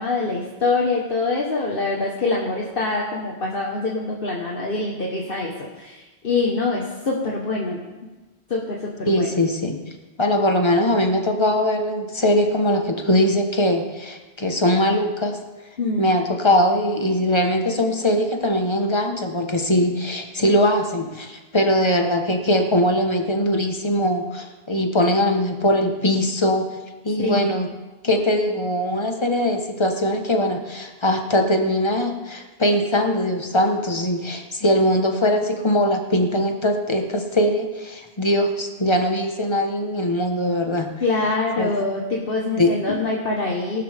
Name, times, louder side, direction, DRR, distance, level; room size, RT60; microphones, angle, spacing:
voice 1, 0.0-7.8 8.5-9.3 15.8-16.2 27.2-27.7 41.0-43.8, left 3 dB, 55° left, -2 dB, 1.6 m, -24 dB
voice 2, 9.0-9.8 10.2-15.4 16.0-26.7 27.0-27.7 28.0-40.9 41.6-41.7 42.6-43.0, left 1 dB, 25° left, 4 dB, 1.3 m, -21 dB
18.5 x 12.5 x 3.6 m, 1.2 s
omnidirectional pair, 1.1 m